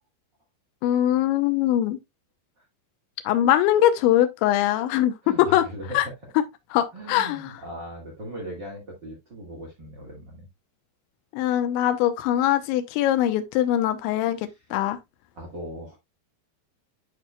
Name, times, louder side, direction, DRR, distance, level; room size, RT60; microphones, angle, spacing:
voice 1, 0.8-2.0 3.3-5.6 5.9-6.0 6.7-7.5 11.3-14.4 14.7-15.0, left 12 dB, 90° left, 3.1 m, -22 dB
voice 2, 5.2-6.1 6.9-10.5 14.5-14.6 15.3-16.0, equal, 40° right, 1.6 m, -39 dB
11.5 x 4.6 x 2.3 m
omnidirectional pair, 5.2 m